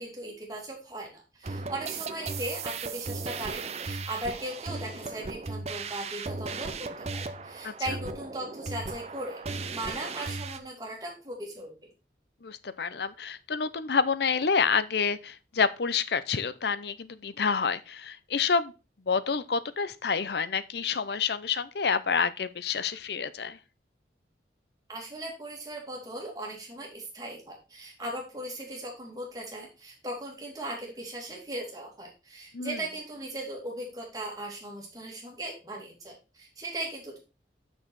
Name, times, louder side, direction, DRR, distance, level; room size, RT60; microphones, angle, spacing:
voice 1, 0.0-11.7 24.9-37.2, right 1 dB, 20° right, 2.6 m, -38 dB
sound 1, 1.4-10.6, right 4 dB, 35° right, 0.5 m, -36 dB
voice 2, 12.4-18.7 19.1-23.6 32.5-32.8, left 5 dB, 65° left, 0.6 m, -28 dB
6.3 x 6.3 x 4.6 m
head